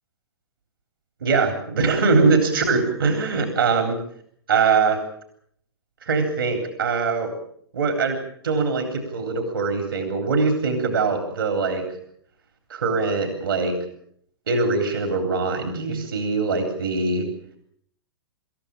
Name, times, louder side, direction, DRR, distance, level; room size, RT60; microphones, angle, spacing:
voice 1, 1.2-4.0 4.5-5.0 6.0-7.3 7.7-8.2 8.4-11.8 12.7-13.8 14.5-17.3, right 4 dB, 60° right, 6 dB, 3.6 m, -22 dB
26.5 x 14.5 x 8.6 m, 0.67 s
figure-of-eight pair, 110°, 13 cm